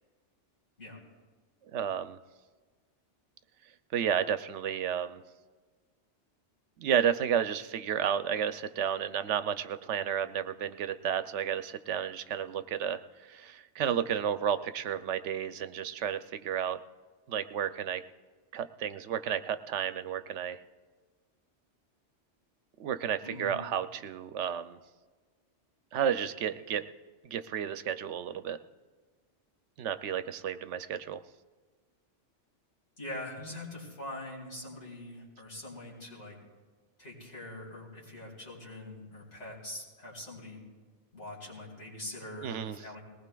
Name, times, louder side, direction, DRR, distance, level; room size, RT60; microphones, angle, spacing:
voice 1, 1.7-2.2 3.9-5.2 6.8-16.8 17.3-18.0 18.5-20.6 22.8-24.8 25.9-26.8 27.2-28.6 29.8-31.2 42.4-42.8, right 8 dB, 75° right, 11 dB, 0.9 m, -32 dB
voice 2, 23.2-23.6 33.0-36.4 37.0-40.6 41.1-43.0, left 1 dB, 75° left, -3 dB, 4.1 m, -43 dB
20.0 x 19.0 x 2.3 m, 1.4 s
omnidirectional pair, 1.2 m